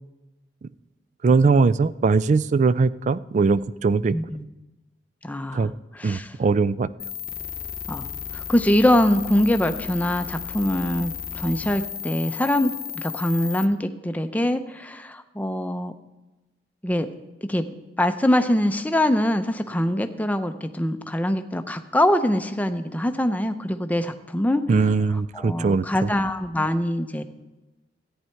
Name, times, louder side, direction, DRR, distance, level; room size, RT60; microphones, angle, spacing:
voice 1, 1.2-4.2 5.5-5.7 6.0-6.9 24.7-26.1, right 4 dB, 40° right, 18 dB, 0.3 m, -20 dB
voice 2, 4.1-4.4 5.2-5.7 5.9-6.3 7.9-8.1 8.3-15.9 16.8-17.1 17.5-17.6 18.0-24.6 25.3-27.2, left 1 dB, 10° left, 8 dB, 0.6 m, -23 dB
sound 1, 7.0-13.6, left 8 dB, 45° left, 0.8 m, -34 dB
14.0 x 9.7 x 4.5 m, 1.1 s
head